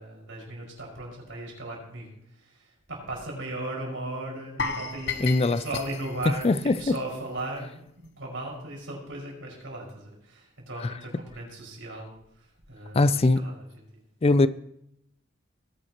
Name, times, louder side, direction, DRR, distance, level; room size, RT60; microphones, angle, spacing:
voice 1, 0.0-14.0, right 1 dB, 85° right, -2 dB, 5.5 m, -37 dB
sound 1, 4.6-7.6 7.9-8.1 8.5-8.6, left 5 dB, 60° left, 1.0 m, -35 dB
voice 2, 5.2-5.6 6.4-6.7 12.9-13.4 14.2-14.5, left 2 dB, 30° left, 15 dB, 0.4 m, -20 dB
19.5 x 11.0 x 3.0 m, 0.76 s
head